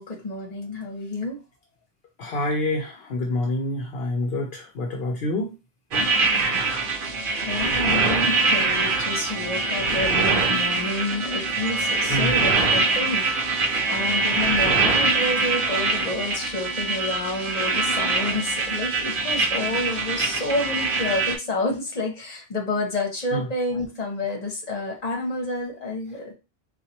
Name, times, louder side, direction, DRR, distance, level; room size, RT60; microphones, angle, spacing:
voice 1, 0.0-1.4 7.4-26.3, left 2 dB, 40° left, 1 dB, 1.2 m, -29 dB
voice 2, 2.2-5.5 12.1-12.3 23.3-23.4, left 1 dB, 70° left, 1 dB, 0.9 m, -27 dB
sound 1, 5.9-21.3, right 3 dB, 60° right, 0.9 m, -23 dB
4.0 x 2.5 x 2.8 m, 0.28 s
omnidirectional pair, 1.0 m